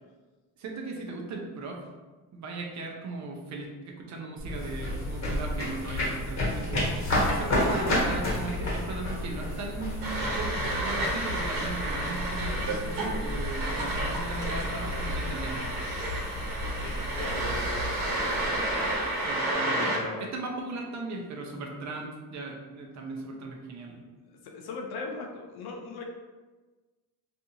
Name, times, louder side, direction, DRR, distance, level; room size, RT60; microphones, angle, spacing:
voice 1, 0.6-1.9 2.3-6.8 7.2-15.7 19.2-19.9 20.2-24.0, right 3 dB, 45° right, 1 dB, 0.6 m, -38 dB
sound 1, 4.4-19.5, left 1 dB, 45° left, 1.3 m, -32 dB
sound 2, 10.0-20.0, right 1 dB, 80° right, 1.1 m, -31 dB
voice 2, 16.6-17.8 18.2-18.9 19.5-20.3 24.4-26.0, left 4 dB, 75° left, 2 dB, 0.6 m, -39 dB
2.5 x 2.3 x 2.7 m, 1.3 s
cardioid pair, 90°, 38 cm